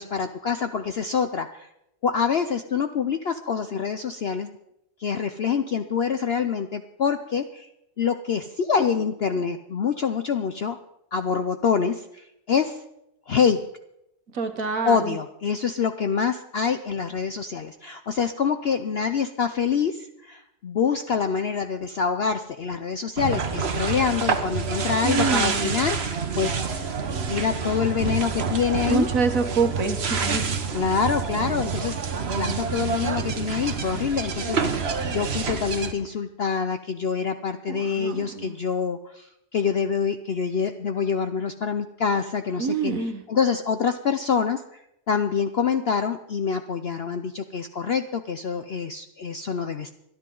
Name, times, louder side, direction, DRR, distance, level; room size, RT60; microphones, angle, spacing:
voice 1, 0.0-1.7 2.0-4.6 5.0-7.7 8.0-10.8 11.1-12.8 13.3-13.6 14.8-26.5 27.3-29.1 30.7-32.0 32.3-49.9, left 6 dB, 60° left, 8 dB, 0.7 m, -26 dB
voice 2, 14.4-15.0 25.0-25.7 28.9-30.4 37.7-38.5 42.6-43.2, right 4 dB, 60° right, 7 dB, 1.6 m, -26 dB
sound 1, 23.2-35.9, right 5 dB, 45° right, 1.3 m, -27 dB
25.0 x 10.5 x 3.9 m, 0.81 s
omnidirectional pair, 1.7 m